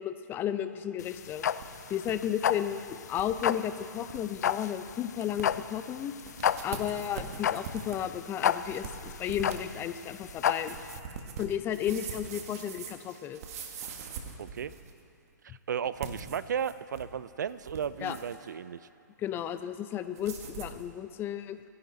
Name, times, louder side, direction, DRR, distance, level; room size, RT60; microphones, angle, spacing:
voice 1, 0.0-1.4 1.9-6.1 6.6-10.8 11.4-13.4 18.0-18.2 19.2-21.7, left 10 dB, 20° left, 11 dB, 0.7 m, -33 dB
sound 1, 1.0-11.0, left 9 dB, 60° left, 0.5 m, -31 dB
sound 2, 1.3-2.1 2.5-2.6 3.1-3.4 3.8-3.9 4.1-4.4 4.9-5.0 5.2-5.7 6.2-15.0 15.9-17.1 17.5-18.4 20.1-20.8, right 6 dB, 50° right, 1.7 m, -43 dB
voice 2, 14.4-14.7 15.7-18.8, right 8 dB, 70° right, 16 dB, 0.6 m, -34 dB
25.5 x 11.0 x 4.0 m, 2.4 s
hypercardioid pair, 130°, 10 cm